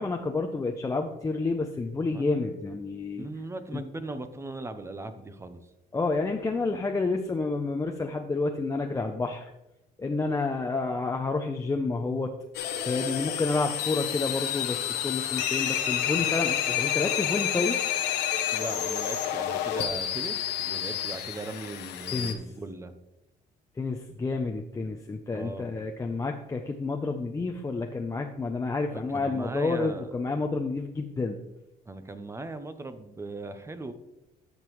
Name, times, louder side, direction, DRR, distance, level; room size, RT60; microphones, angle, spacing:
voice 1, 0.0-3.3 5.9-9.5 10.0-12.3 12.8-17.8 22.1-22.4 23.8-31.4, left 3 dB, 20° left, 2 dB, 0.6 m, -29 dB
voice 2, 2.1-2.5 3.2-5.6 18.5-22.9 25.3-25.7 28.9-30.1 31.9-33.9, right 2 dB, 15° right, 10 dB, 0.7 m, -39 dB
sound 1, 12.5-22.3, left 10 dB, 90° left, 0.9 m, -29 dB
13.0 x 5.2 x 3.1 m, 0.91 s
cardioid pair, 110°, 17 cm